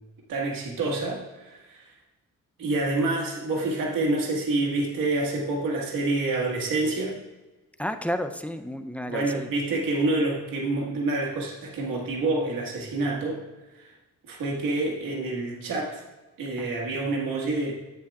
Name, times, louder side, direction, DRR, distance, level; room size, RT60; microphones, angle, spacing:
voice 1, 0.3-1.9 2.6-7.2 9.1-13.4 13.7-13.9 14.3-16.0 16.4-17.7, right 2 dB, 85° right, -1 dB, 1.7 m, -27 dB
voice 2, 7.8-9.5 16.6-17.1, equal, 5° left, 8 dB, 0.5 m, -32 dB
10.0 x 8.9 x 2.4 m, 1.1 s
cardioid pair, 95°, 33 cm